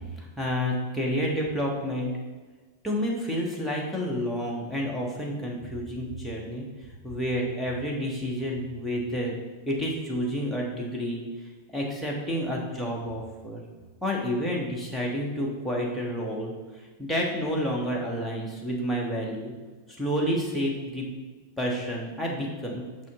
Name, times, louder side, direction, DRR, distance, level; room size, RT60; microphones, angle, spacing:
voice 1, 0.2-2.1 2.8-6.6 7.0-9.3 9.7-11.2 11.7-13.6 14.0-16.5 17.0-19.5 20.0-21.0 21.6-22.8, equal, 5° left, -3 dB, 1.4 m, -29 dB
5.9 x 5.7 x 3.8 m, 1.3 s
figure-of-eight pair, 90°, 0 cm